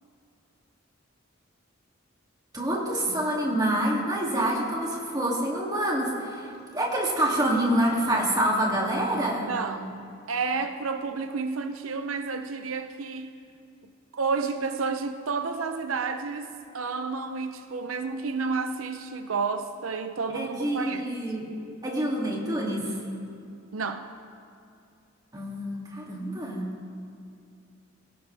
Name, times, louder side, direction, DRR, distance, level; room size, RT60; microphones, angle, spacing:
voice 1, 2.5-9.6 20.3-21.5 21.8-22.9 25.3-26.7, right 1 dB, 20° right, -3 dB, 2.7 m, -27 dB
voice 2, 9.5-13.3 14.1-16.5 16.7-21.1 23.7-24.0, right 4 dB, 90° right, 8 dB, 0.7 m, -30 dB
22.0 x 17.0 x 3.5 m, 2.5 s
head